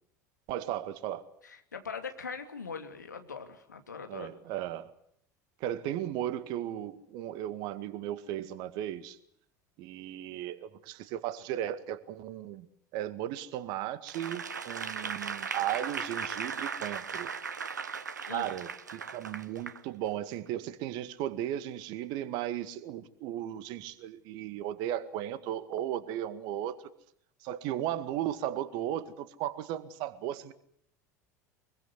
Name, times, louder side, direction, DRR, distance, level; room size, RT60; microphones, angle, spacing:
voice 1, 0.5-1.3 4.1-4.9 5.6-9.2 9.8-12.7 12.9-17.3 18.3-26.8 27.4-30.5, right 12 dB, 50° right, 13 dB, 2.0 m, -36 dB
voice 2, 1.4-4.3 18.3-18.5, left 5 dB, 75° left, 6 dB, 2.7 m, -41 dB
Applause / Crowd, 14.1-19.8 20.3-20.5, right 6 dB, 75° right, 1.2 m, -37 dB
25.0 x 22.5 x 8.2 m, 0.69 s
figure-of-eight pair, 75°, 10 cm